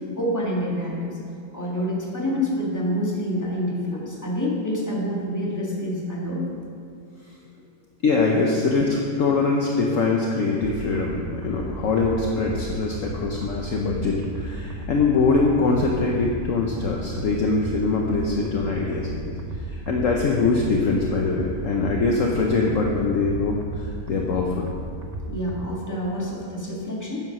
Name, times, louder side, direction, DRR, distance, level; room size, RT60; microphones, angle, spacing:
voice 1, 0.1-1.2 1.5-6.5 8.4-8.5 25.3-27.2, equal, 10° left, -5 dB, 2.1 m, -27 dB
voice 2, 8.0-19.2 19.7-24.7, left 3 dB, 55° left, -1 dB, 1.1 m, -23 dB
sound 1, 10.6-25.6, right 2 dB, 35° right, 0.7 m, -34 dB
9.8 x 7.8 x 6.1 m, 2.3 s
omnidirectional pair, 1.8 m